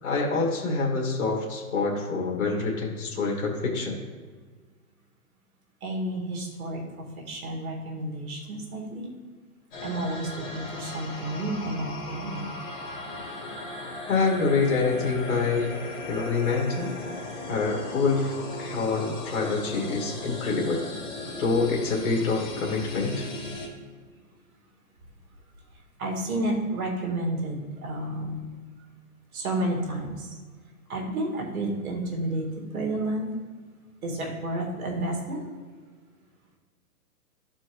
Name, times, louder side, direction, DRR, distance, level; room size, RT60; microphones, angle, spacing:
voice 1, 0.0-4.0 14.1-15.7 16.1-16.9 17.5-20.8 21.4-23.3, left 4 dB, 50° left, -1 dB, 1.6 m, -26 dB
voice 2, 5.8-9.1 9.8-12.5 26.0-28.4 29.3-30.3 30.9-33.3 34.0-35.4, right 1 dB, 65° right, 0 dB, 2.0 m, -31 dB
sound 1, 9.7-23.7, left 2 dB, 30° left, 1.4 m, -37 dB
12.0 x 4.5 x 3.0 m, 1.5 s
hypercardioid pair, 160°, 46 cm